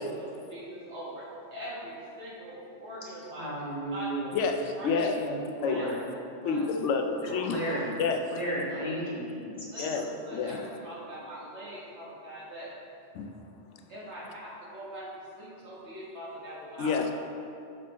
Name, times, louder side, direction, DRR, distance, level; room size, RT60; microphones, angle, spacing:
voice 1, 0.2-3.6 3.9-4.1 4.8-5.1 5.7-5.8 6.4-6.6 7.3-7.8 8.7-8.9 9.7-12.7 13.9-17.0, equal, 70° right, -7 dB, 1.9 m, -42 dB
voice 2, 3.4-4.3 5.2-6.0 7.5-7.9 8.3-9.9, right 1 dB, 35° left, -6 dB, 1.3 m, -34 dB
voice 3, 4.3-5.2 5.6-5.9 6.4-7.6 8.0-8.3 9.8-10.6 13.1-13.4 16.8-17.1, left 4 dB, 85° left, 5 dB, 0.9 m, -29 dB
5.9 x 5.4 x 4.2 m, 2.6 s
omnidirectional pair, 1.2 m